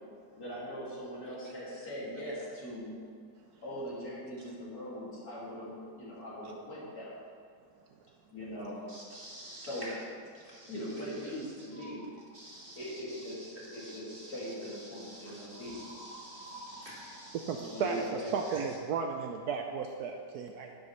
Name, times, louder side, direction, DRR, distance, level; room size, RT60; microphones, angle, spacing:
voice 1, 0.4-3.0 3.6-7.1 8.3-8.8 9.6-9.8 10.7-12.0 12.8-15.9 17.5-18.3, equal, 55° left, -7 dB, 2.8 m, -41 dB
voice 2, 8.9-10.0 10.3-11.8 12.3-18.8, right 1 dB, 30° right, -7 dB, 2.3 m, -49 dB
sound 1, 11.7-12.2 15.5-18.3, right 1 dB, 75° left, 3.5 m, -51 dB
voice 3, 17.3-20.7, right 5 dB, 70° right, 3 dB, 1.0 m, -34 dB
11.0 x 9.4 x 3.2 m, 2.2 s
omnidirectional pair, 1.9 m